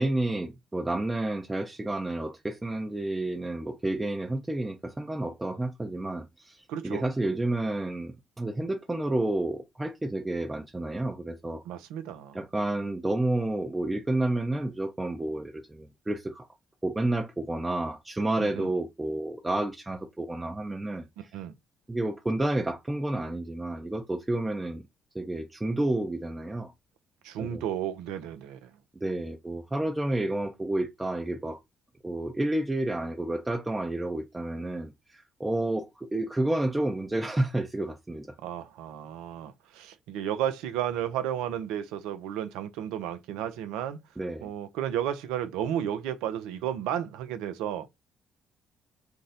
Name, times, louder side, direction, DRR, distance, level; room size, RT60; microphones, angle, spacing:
voice 1, 0.0-11.6 12.3-16.5 16.8-21.4 21.9-24.8 25.1-26.7 27.4-27.6 29.0-31.6 32.0-38.3 44.2-44.5, right 1 dB, 15° right, 0.5 m, -30 dB
voice 2, 6.7-7.1 11.7-12.4 18.4-18.7 21.3-21.5 27.2-28.7 38.4-44.0 44.4-47.9, right 10 dB, 80° right, 0.4 m, -33 dB
2.6 x 2.0 x 3.9 m
hypercardioid pair, 55°, 0 cm